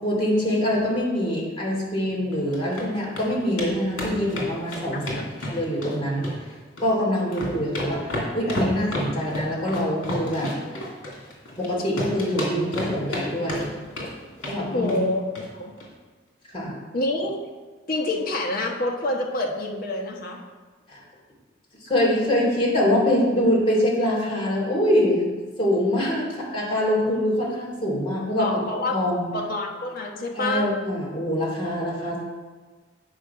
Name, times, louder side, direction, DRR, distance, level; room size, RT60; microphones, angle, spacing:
voice 1, 0.0-6.3 6.8-8.1 8.3-10.5 11.6-13.7 14.5-14.9 16.5-16.7 20.9-21.0 21.8-25.2 25.6-29.3 30.3-32.2, left 1 dB, 30° left, -5 dB, 2.6 m, -24 dB
sound 1, 2.3-2.8 3.2-3.3 3.6-3.7 4.0-5.9 6.2-6.9 7.2-11.7 12.0-13.2 13.5-14.1 14.4-14.6 14.9-15.1 15.4-15.5 15.8-15.9, left 1 dB, 80° left, 2.7 m, -31 dB
voice 2, 14.7-15.2 15.5-15.7 16.9-17.4 17.9-20.4 28.4-28.9 29.3-30.7, left 2 dB, 50° left, 0 dB, 1.3 m, -27 dB
8.6 x 5.1 x 5.6 m, 1.4 s
head